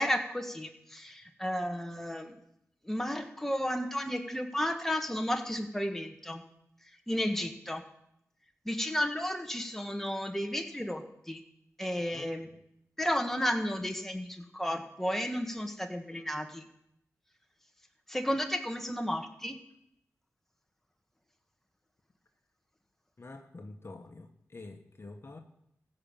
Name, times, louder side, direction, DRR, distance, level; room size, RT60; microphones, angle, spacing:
voice 1, 0.0-2.3 2.8-6.4 7.1-7.8 8.6-11.4 11.8-12.5 13.0-16.7 18.1-19.5, equal, 5° left, 4 dB, 1.6 m, -33 dB
voice 2, 12.1-12.6 23.2-25.4, left 2 dB, 45° left, 5 dB, 1.3 m, -47 dB
15.5 x 5.6 x 7.3 m, 0.77 s
cardioid pair, 45°, 6 cm